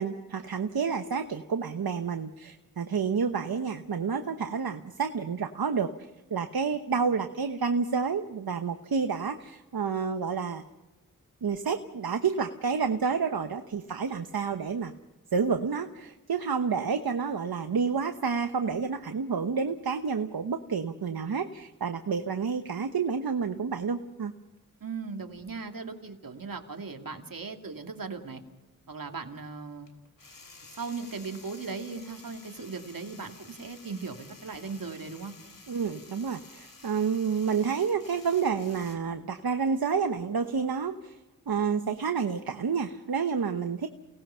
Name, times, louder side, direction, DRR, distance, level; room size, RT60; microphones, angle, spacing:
voice 1, 0.0-5.9 6.3-10.6 11.4-14.9 15.3-24.3 35.7-41.2 41.5-43.9, right 5 dB, 85° right, 7 dB, 1.1 m, -29 dB
voice 2, 24.8-28.4 28.9-29.9 30.8-35.3, right 4 dB, 70° right, 4 dB, 2.5 m, -38 dB
sound 1, 27.7-27.8 29.9-39.0, left 3 dB, 65° left, 3.6 m, -52 dB
29.0 x 19.0 x 5.7 m, 1.1 s
wide cardioid pair, 55°, 35 cm